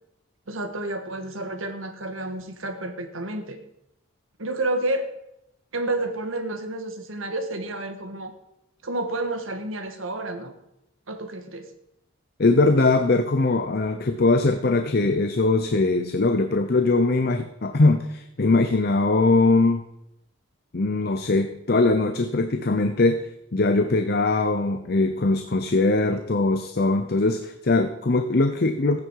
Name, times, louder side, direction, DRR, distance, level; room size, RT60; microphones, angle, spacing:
voice 1, 0.5-3.6 4.4-5.1 5.7-8.3 8.8-10.5 11.1-11.7, right 2 dB, 85° right, 6 dB, 1.6 m, -30 dB
voice 2, 12.4-19.8 20.7-29.0, left 2 dB, 50° left, 8 dB, 0.7 m, -21 dB
15.5 x 9.4 x 4.7 m, 0.84 s
head